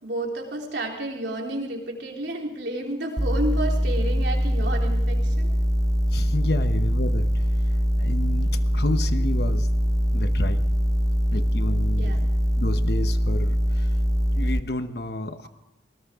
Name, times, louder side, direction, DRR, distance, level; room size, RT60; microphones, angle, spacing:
voice 1, 0.0-5.5 12.0-12.2, right 1 dB, 70° right, 0 dB, 3.4 m, -31 dB
sound 1, 3.2-14.6, equal, 20° right, 0.6 m, -23 dB
voice 2, 6.1-7.4 8.0-9.7 10.1-10.7 11.3-12.3 12.6-13.9 14.3-15.5, left 2 dB, 55° left, 10 dB, 1.0 m, -30 dB
21.0 x 18.5 x 3.7 m, 0.90 s
head